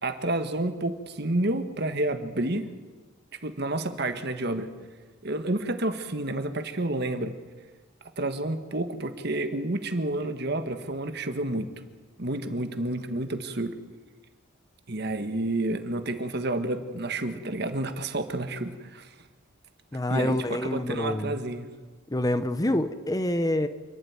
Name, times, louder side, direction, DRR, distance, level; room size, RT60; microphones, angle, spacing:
voice 1, 0.0-2.7 3.4-4.7 5.2-7.3 8.2-11.7 12.2-13.7 14.9-19.1 20.1-21.7, right 2 dB, 55° right, 8 dB, 1.6 m, -30 dB
voice 2, 19.9-21.4 22.1-23.7, left 1 dB, 20° left, 11 dB, 0.8 m, -27 dB
27.5 x 12.0 x 9.5 m, 1.4 s
head